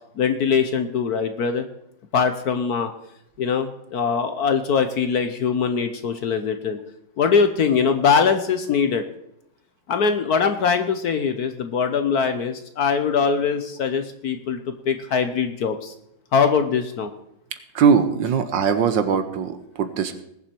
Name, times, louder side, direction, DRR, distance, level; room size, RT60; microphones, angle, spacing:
voice 1, 0.2-1.6 2.1-2.9 3.4-6.8 7.2-9.0 9.9-14.6 14.8-15.9 16.3-17.1, left 6 dB, 60° left, 8 dB, 1.2 m, -22 dB
voice 2, 17.7-20.2, right 6 dB, 70° right, 10 dB, 1.6 m, -20 dB
20.0 x 7.4 x 4.5 m, 0.79 s
omnidirectional pair, 2.2 m